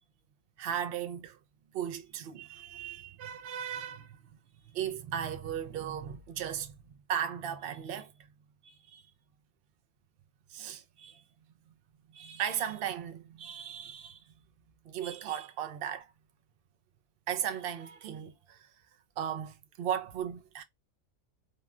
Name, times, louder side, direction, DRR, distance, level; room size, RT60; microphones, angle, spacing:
voice 1, 0.6-1.4 1.7-4.2 4.7-6.7 7.1-8.1 8.6-9.0 10.5-11.2 12.1-14.2 14.9-16.1 17.3-18.7 19.2-20.6, right 9 dB, 70° right, 0.5 m, -36 dB
2.9 x 2.2 x 2.3 m
omnidirectional pair, 1.4 m